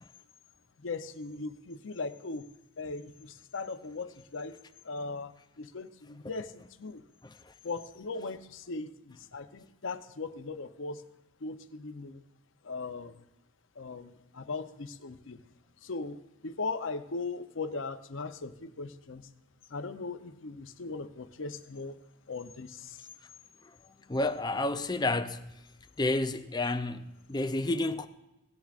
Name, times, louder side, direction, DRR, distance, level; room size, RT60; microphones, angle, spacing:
voice 1, 0.8-2.5 2.8-4.6 4.8-6.5 6.8-7.0 7.6-11.0 11.4-12.2 12.6-13.1 13.8-15.4 15.8-19.3 19.7-21.9 22.3-23.1, left 3 dB, 70° left, 0.7 m, -39 dB
voice 2, 7.2-7.5 24.1-25.5 26.0-28.1, left 2 dB, 20° left, 0.5 m, -30 dB
17.5 x 10.5 x 2.5 m
head